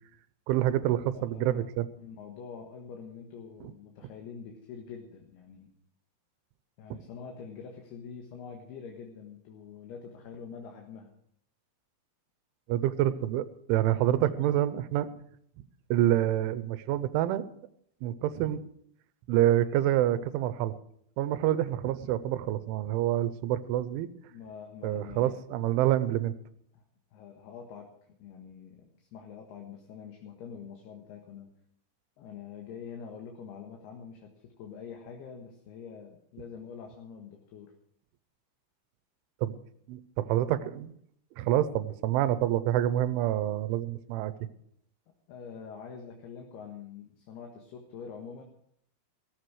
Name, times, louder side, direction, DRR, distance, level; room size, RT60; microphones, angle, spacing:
voice 1, 0.5-1.9 3.6-3.7 12.7-15.1 15.9-17.5 18.0-18.6 19.3-20.7 21.2-24.1 24.8-26.4 39.4-39.6 39.9-40.9 41.4-44.3, right 12 dB, 85° right, 14 dB, 3.2 m, -27 dB
voice 2, 1.1-1.6 2.0-5.7 6.8-11.1 24.3-25.9 26.7-26.8 27.1-27.9 28.2-31.5 32.2-37.7 45.3-48.4, left 6 dB, 65° left, 2 dB, 3.3 m, -45 dB
17.5 x 14.5 x 4.8 m, 0.67 s
omnidirectional pair, 5.5 m